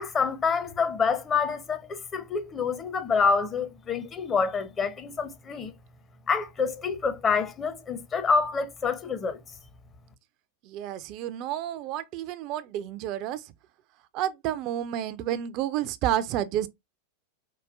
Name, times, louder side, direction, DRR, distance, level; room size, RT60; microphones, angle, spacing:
voice 1, 0.0-5.7 6.3-9.4, left 5 dB, 25° left, 0.5 m, -27 dB
voice 2, 10.6-13.5 14.1-16.7, right 11 dB, 40° right, 0.3 m, -30 dB
4.7 x 2.2 x 2.5 m
figure-of-eight pair, 90°, 0 cm